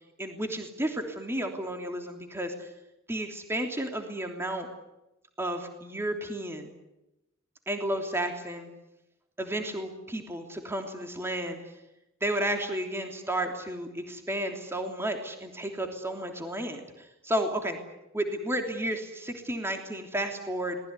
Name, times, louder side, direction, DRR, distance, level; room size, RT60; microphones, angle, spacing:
voice 1, 0.2-2.7 3.1-4.7 5.4-6.7 7.7-8.7 9.4-11.7 12.2-17.8 18.1-20.8, right 1 dB, 15° right, 4 dB, 3.1 m, -32 dB
26.0 x 20.0 x 9.7 m, 0.92 s
head